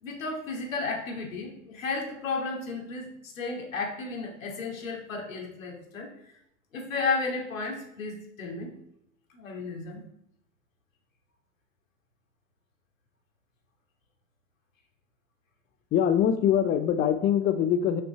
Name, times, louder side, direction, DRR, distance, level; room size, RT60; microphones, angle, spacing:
voice 1, 0.0-6.1 6.7-8.7 9.3-10.0, left 4 dB, 80° left, 0 dB, 2.5 m, -33 dB
voice 2, 15.9-18.0, left 9 dB, 25° left, 10 dB, 0.5 m, -23 dB
6.4 x 6.0 x 4.8 m, 0.74 s
hypercardioid pair, 100°, 40 cm